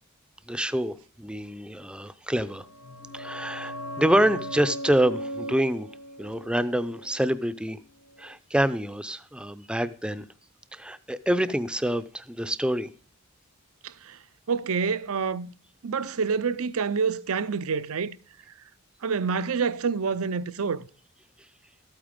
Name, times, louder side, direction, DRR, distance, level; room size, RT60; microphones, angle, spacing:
voice 1, 0.5-2.6 3.1-5.9 6.2-7.8 8.2-10.2 10.7-12.9, right 1 dB, 5° right, 0.5 m, -26 dB
sound 1, 2.5-7.9 8.1-8.2, equal, 80° left, 2.4 m, -38 dB
voice 2, 13.8-14.2 14.5-15.5 15.8-18.2 19.0-20.9, right 5 dB, 75° right, 0.6 m, -27 dB
13.0 x 8.9 x 5.1 m
head